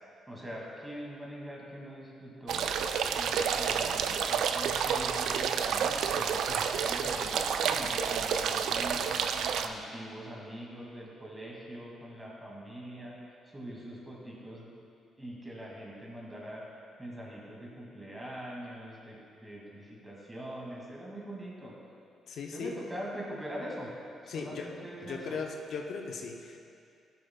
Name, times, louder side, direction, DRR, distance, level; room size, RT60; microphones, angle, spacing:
voice 1, 0.3-2.7 3.2-14.8 15.2-21.7 22.5-23.9 24.2-25.4, equal, 15° right, -4 dB, 2.0 m, -43 dB
sound 1, 2.5-9.7, right 7 dB, 75° right, 0.3 m, -29 dB
voice 2, 22.3-22.8 24.3-26.6, left 5 dB, 65° left, 2 dB, 0.6 m, -38 dB
13.0 x 6.8 x 2.2 m, 2.4 s
cardioid pair, 90°, 0 cm